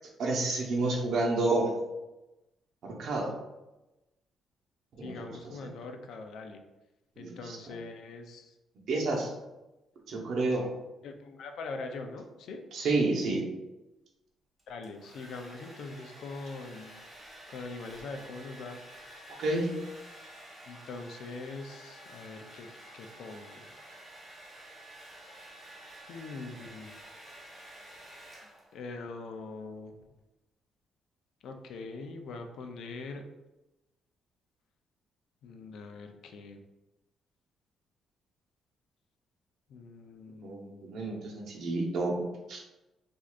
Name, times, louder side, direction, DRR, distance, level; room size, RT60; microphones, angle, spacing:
voice 1, 0.2-1.7 2.8-3.3 5.0-5.3 7.2-7.6 8.9-9.3 10.1-10.7 12.7-13.5 19.4-19.7 40.4-42.6, right 2 dB, 70° right, -1 dB, 0.9 m, -30 dB
voice 2, 5.0-6.6 7.2-8.6 10.1-10.2 11.0-12.6 14.7-17.0 17.5-18.8 20.7-23.7 26.1-26.9 28.7-29.9 31.4-33.3 35.4-36.6 39.7-41.5, left 3 dB, 75° left, 5 dB, 0.5 m, -43 dB
Domestic sounds home sounds, 14.6-28.9, right 1 dB, 10° right, 1.2 m, -50 dB
4.5 x 2.6 x 2.4 m, 1.0 s
cardioid pair, 90°, 0 cm